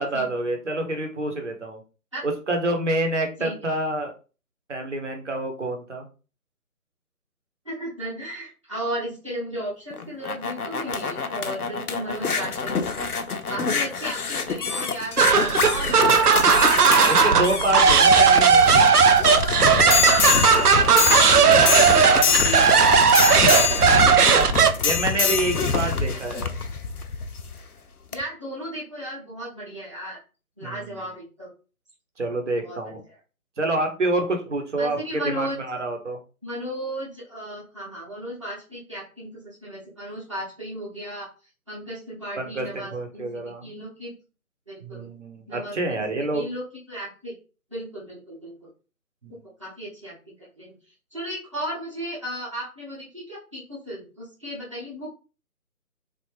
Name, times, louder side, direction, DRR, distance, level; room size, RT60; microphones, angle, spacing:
voice 1, 0.0-1.8 2.2-4.1 4.7-6.1 13.6-13.7 16.0-16.2 17.1-18.9 24.8-26.5 30.6-31.0 32.2-33.0 33.6-36.2 42.4-43.7 44.8-46.5 49.2-49.4, right 2 dB, 50° right, 4 dB, 0.9 m, -27 dB
voice 2, 3.4-3.7 7.6-13.0 13.5-18.3 20.0-24.4 25.8-26.3 28.1-30.2 30.6-31.5 32.6-33.0 34.8-35.6 36.4-41.3 41.7-43.3 43.6-44.1 44.7-45.1 45.5-47.3 47.7-48.7 49.3-50.8 51.1-55.1, equal, 20° right, -6 dB, 0.9 m, -35 dB
sound 1, 9.9-27.6 28.1-28.2, left 6 dB, 80° left, 0.6 m, -25 dB
sound 2, 15.2-24.7, right 5 dB, 90° right, 0.6 m, -16 dB
3.3 x 2.5 x 3.1 m, 0.35 s
figure-of-eight pair, 150°, 45 cm